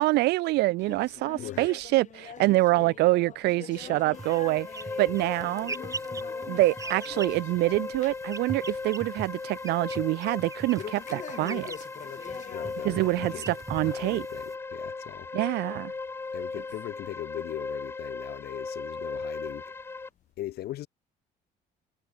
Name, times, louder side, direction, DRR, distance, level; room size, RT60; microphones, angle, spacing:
voice 1, 0.0-4.7 5.0-5.7 6.5-11.7 12.8-14.3 15.3-15.9, right 19 dB, 75° right, 0.5 m, -26 dB
sound 1, 0.8-8.3 8.6-9.0 9.3-9.4 10.8-13.4 13.8-14.0 14.7-14.8 15.7-15.8 16.6-16.7, left 8 dB, 45° left, 3.3 m, -44 dB
voice 2, 1.4-1.7 12.5-13.5 13.8-15.3 16.3-19.6 20.4-20.9, left 14 dB, 70° left, 1.4 m, -39 dB
sound 2, 3.8-20.1, left 3 dB, 15° left, 0.4 m, -38 dB
sound 3, 4.1-14.5, right 3 dB, 20° right, 1.6 m, -42 dB
cardioid pair, 110°, 17 cm